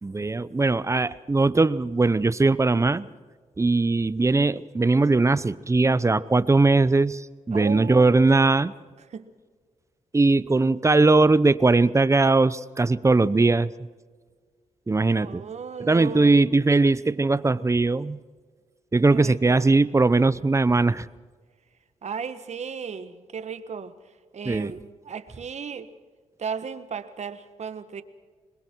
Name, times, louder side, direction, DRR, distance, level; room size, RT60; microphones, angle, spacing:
voice 1, 0.0-3.1 3.6-7.2 7.5-8.7 10.1-13.7 14.9-15.4 15.8-18.2 18.9-21.1 24.5-24.7, right 3 dB, 25° right, 0.7 m, -20 dB
voice 2, 7.5-8.4 9.0-9.3 15.1-16.4 19.1-19.8 22.0-23.9 24.3-25.9 26.4-28.0, right 6 dB, 60° right, 1.4 m, -35 dB
26.5 x 21.5 x 4.6 m
cardioid pair, 75°, 13 cm